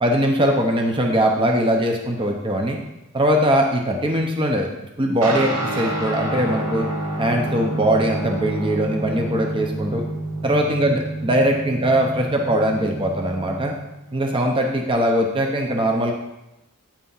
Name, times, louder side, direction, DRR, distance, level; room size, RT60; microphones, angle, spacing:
voice 1, 0.0-2.8 3.1-4.7 5.0-6.9 7.2-10.0 10.4-13.7 14.1-16.1, equal, 20° right, 2 dB, 0.6 m, -21 dB
Guitar, 5.2-14.9, right 2 dB, 80° right, 1.1 m, -29 dB
8.6 x 3.4 x 5.5 m, 0.95 s
head